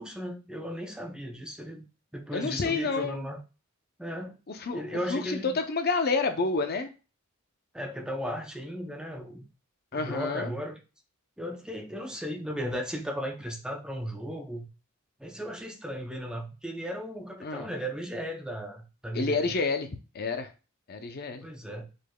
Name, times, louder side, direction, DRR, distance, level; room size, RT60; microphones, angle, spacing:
voice 1, 0.0-1.9 2.1-3.4 4.0-4.4 4.7-5.6 7.7-9.5 9.9-10.8 11.4-14.7 15.2-19.6 21.4-21.9, equal, 5° right, 2 dB, 0.5 m, -36 dB
voice 2, 2.3-3.2 4.6-4.8 5.1-6.9 9.9-10.5 17.4-17.7 19.1-19.9 20.1-20.5 20.9-21.4, left 4 dB, 50° left, 6 dB, 0.6 m, -29 dB
5.0 x 3.9 x 2.2 m, 0.32 s
head